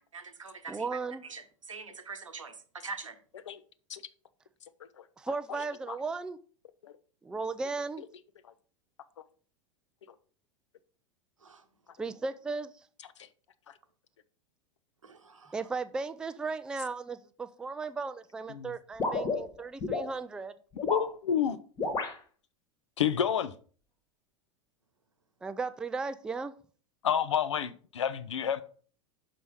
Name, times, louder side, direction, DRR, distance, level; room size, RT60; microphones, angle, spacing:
voice 1, 0.1-2.6 2.8-3.2 11.4-11.6 15.0-15.5, right 4 dB, 75° right, 1.0 m, -44 dB
voice 2, 0.7-1.2 5.2-6.4 7.2-8.0 12.0-12.7 15.5-20.5 25.4-26.5, right 4 dB, 5° right, 0.3 m, -36 dB
sound 1, 19.0-20.1 20.7-21.1 21.8-22.2, left 3 dB, 25° left, 1.3 m, -31 dB
voice 3, 20.8-21.6 23.0-23.5 27.0-28.6, left 8 dB, 65° left, 0.6 m, -29 dB
5.8 x 5.4 x 4.7 m
figure-of-eight pair, 85°, 17 cm